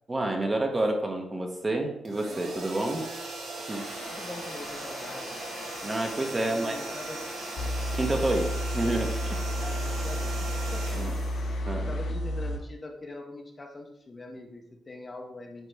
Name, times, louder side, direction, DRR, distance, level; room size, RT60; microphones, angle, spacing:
voice 1, 0.1-3.0 3.7-3.9 5.8-6.8 7.9-9.4 11.0-11.1 11.7-11.9, right 2 dB, 20° right, 2 dB, 1.0 m, -29 dB
sound 1, 2.1-12.0, right 2 dB, 80° right, 1.9 m, -38 dB
sound 2, 3.7-12.1, left 4 dB, 60° left, 0.9 m, -45 dB
voice 2, 4.1-5.6 6.4-7.2 9.5-11.2 11.8-15.7, left 2 dB, 25° left, 3 dB, 0.8 m, -43 dB
sound 3, 7.6-12.6, equal, 80° left, 1.6 m, -31 dB
9.0 x 3.4 x 3.3 m, 0.78 s
cardioid pair, 130°, 0 cm